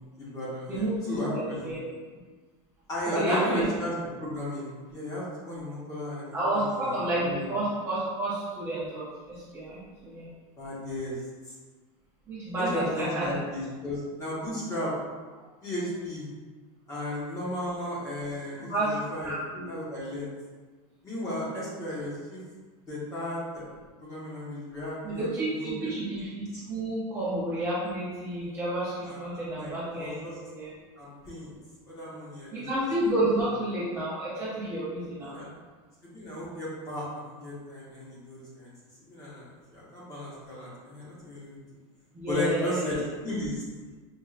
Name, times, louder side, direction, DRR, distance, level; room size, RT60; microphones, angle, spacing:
voice 1, 0.0-1.7 2.9-7.5 10.6-11.1 12.6-14.9 15.6-16.3 16.9-19.3 19.7-20.3 21.0-22.4 22.9-23.6 24.0-26.0 26.5-26.6 29.0-30.4 31.0-31.5 31.8-32.6 35.3-35.5 36.0-38.7 39.1-39.5 39.7-41.6 42.3-43.6, left 1 dB, 20° left, -7 dB, 1.2 m, -35 dB
voice 2, 0.7-1.8 3.1-3.6 6.3-10.3 12.3-13.3 17.0-17.1 18.7-18.9 19.2-19.6 25.0-30.2 30.5-30.7 32.5-35.3 42.1-43.0, right 1 dB, 15° right, -10 dB, 0.7 m, -30 dB
5.5 x 2.7 x 2.4 m, 1.4 s
supercardioid pair, 170°, 18 cm